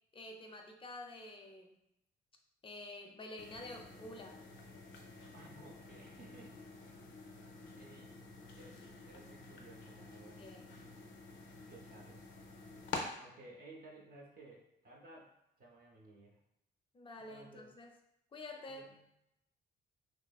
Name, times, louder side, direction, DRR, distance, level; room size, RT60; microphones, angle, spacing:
voice 1, 0.1-1.8 2.6-4.4 10.4-10.7 16.9-17.9 18.3-18.9, left 2 dB, 25° left, 3 dB, 0.4 m, -49 dB
sound 1, 3.4-13.0, left 4 dB, 90° left, 0.5 m, -49 dB
voice 2, 5.3-6.5 6.8-6.9 7.8-8.2 8.6-10.4 11.7-12.2 13.2-15.3 15.6-16.4 17.3-17.7 18.7-19.1, right 2 dB, 50° right, -2 dB, 0.6 m, -57 dB
2.7 x 2.4 x 2.2 m, 0.84 s
cardioid pair, 90°, 20 cm